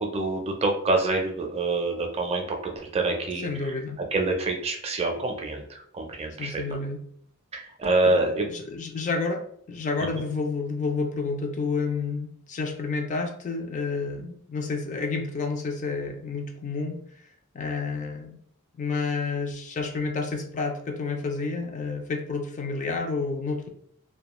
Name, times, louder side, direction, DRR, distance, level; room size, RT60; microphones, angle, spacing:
voice 1, 0.0-3.5 4.1-6.6 7.5-8.5, right 2 dB, 30° right, 2 dB, 0.4 m, -26 dB
voice 2, 3.4-4.0 6.4-7.0 8.0-9.4 9.7-17.0 17.5-18.4 18.8-23.7, left 4 dB, 35° left, 4 dB, 0.3 m, -30 dB
2.3 x 2.2 x 2.9 m, 0.64 s
head